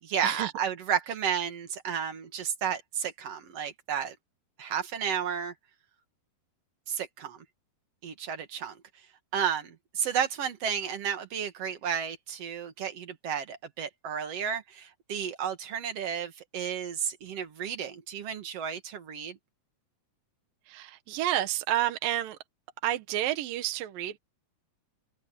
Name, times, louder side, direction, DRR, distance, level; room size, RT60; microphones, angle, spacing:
voice 1, 0.0-4.2 4.6-5.5 6.9-7.4 8.0-8.8 9.3-19.4, right 8 dB, 50° right, 2.3 m, -32 dB
voice 2, 20.7-22.4 22.8-24.2, right 13 dB, 70° right, 2.6 m, -30 dB
omnidirectional pair, 4.6 m